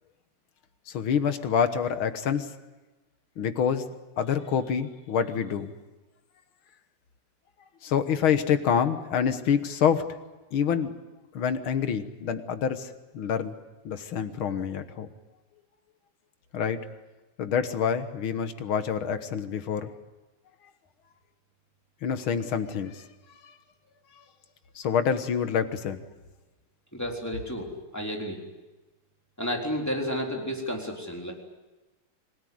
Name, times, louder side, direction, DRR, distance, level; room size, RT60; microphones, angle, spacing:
voice 1, 0.9-2.5 3.4-3.9 4.2-5.7 7.8-10.2 10.5-10.9 11.3-13.6 13.9-15.1 16.5-16.9 17.4-19.9 22.0-23.1 23.4-23.5 24.8-26.0, left 7 dB, 70° left, 10 dB, 2.1 m, -27 dB
voice 2, 26.9-28.4 29.4-31.3, equal, 5° left, 0 dB, 3.7 m, -31 dB
26.0 x 17.5 x 9.5 m, 1.1 s
omnidirectional pair, 2.4 m